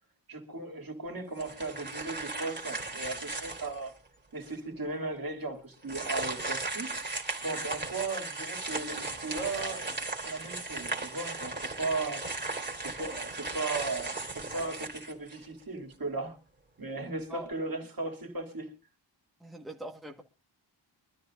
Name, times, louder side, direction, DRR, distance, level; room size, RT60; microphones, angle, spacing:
voice 1, 0.3-3.9 4.3-6.9 7.4-9.9 10.2-12.2 12.8-16.4 16.8-18.7, right 3 dB, 50° right, 2.9 m, -36 dB
sound 1, 1.4-3.9 4.5-4.6 5.8-15.6, right 3 dB, 25° right, 2.8 m, -36 dB
voice 2, 19.4-20.2, right 1 dB, ahead, 1.5 m, -42 dB
24.0 x 12.5 x 2.6 m
wide cardioid pair, 110°, 45 cm